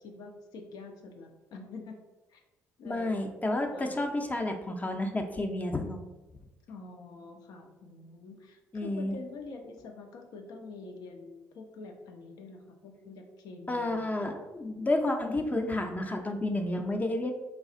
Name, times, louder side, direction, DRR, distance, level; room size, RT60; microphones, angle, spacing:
voice 1, 0.0-2.0 2.3-2.4 2.8-3.3 3.7-4.1 6.7-14.4, left 3 dB, 65° left, 3 dB, 0.6 m, -46 dB
voice 2, 2.8-6.0 8.7-9.2 13.7-17.3, left 1 dB, 20° left, 4 dB, 0.6 m, -31 dB
3.3 x 2.3 x 3.7 m, 1.1 s
hypercardioid pair, 50°, 7 cm